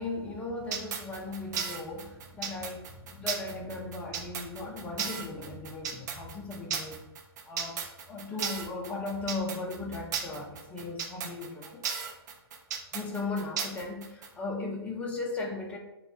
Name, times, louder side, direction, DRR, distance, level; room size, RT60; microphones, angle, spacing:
voice 1, 0.0-7.1 7.4-11.8 12.9-15.8, left 3 dB, 10° left, 0 dB, 0.5 m, -37 dB
sound 1, 0.7-14.3, right 7 dB, 45° right, 0.5 m, -35 dB
5.8 x 2.3 x 2.7 m, 0.89 s
hypercardioid pair, 140°, 14 cm